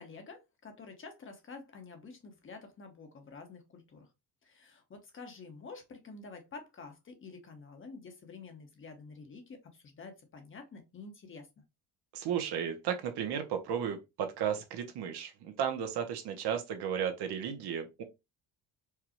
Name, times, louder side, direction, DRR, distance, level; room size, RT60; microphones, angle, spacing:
voice 1, 0.0-4.1 4.4-11.5, left 4 dB, 30° left, 1.0 m, -49 dB
voice 2, 12.1-18.0, right 8 dB, 70° right, 1.1 m, -34 dB
4.7 x 2.3 x 3.0 m
cardioid pair, 140°, 41 cm